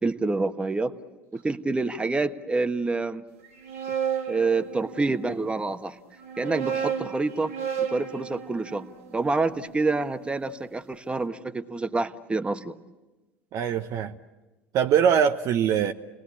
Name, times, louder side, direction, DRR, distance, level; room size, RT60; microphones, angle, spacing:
voice 1, 0.0-0.9 1.3-3.2 4.3-6.0 6.4-7.5 7.8-12.7, right 3 dB, 15° right, 9 dB, 1.3 m, -27 dB
sound 1, 3.4-5.3 6.1-10.3, right 8 dB, 80° right, 2.2 m, -33 dB
voice 2, 13.5-14.2 14.7-15.9, right 8 dB, 50° right, 7 dB, 0.9 m, -22 dB
29.5 x 19.5 x 8.6 m, 1.1 s
hypercardioid pair, 70°, 7 cm